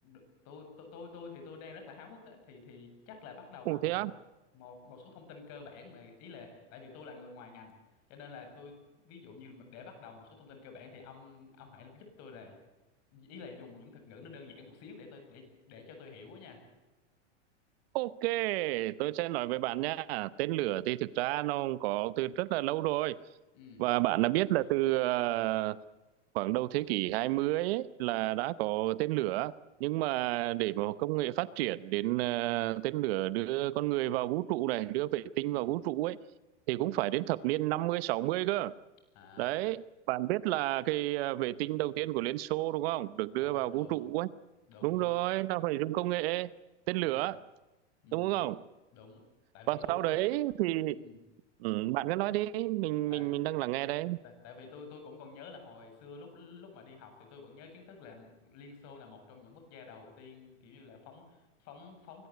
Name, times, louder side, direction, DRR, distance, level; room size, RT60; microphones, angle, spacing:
voice 1, 0.0-4.0 4.5-7.7 8.1-12.5 13.1-16.6 23.5-23.8 35.4-35.6 36.8-36.9 39.1-39.6 43.4-44.0 44.7-45.1 47.0-47.3 48.0-48.3 48.9-49.2 49.5-50.2 50.9-51.2 53.1-53.3 54.2-62.3, left 4 dB, 45° left, 7.7 m, -50 dB
voice 2, 3.7-4.1 17.9-23.2 23.8-25.8 26.3-29.5 29.8-36.2 36.7-38.7 39.4-44.3 44.8-46.5 46.9-47.4 48.1-48.6 49.7-50.9 51.6-54.2, right 17 dB, 55° right, 0.9 m, -31 dB
24.5 x 14.5 x 9.5 m
hypercardioid pair, 120°, 36 cm